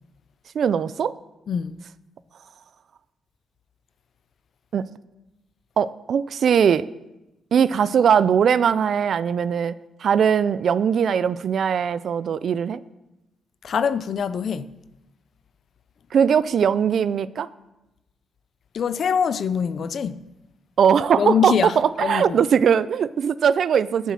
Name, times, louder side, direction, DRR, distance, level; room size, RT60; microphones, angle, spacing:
voice 1, 0.5-1.1 4.7-4.8 5.8-6.9 7.5-9.7 10.0-12.8 16.1-17.5 20.8-24.1, right 7 dB, 55° right, 0.4 m, -20 dB
voice 2, 1.5-1.8 13.6-14.7 18.7-20.2 21.2-21.7 22.0-22.4, left 7 dB, 50° left, 0.4 m, -24 dB
9.6 x 7.2 x 7.6 m
cardioid pair, 150°, 0 cm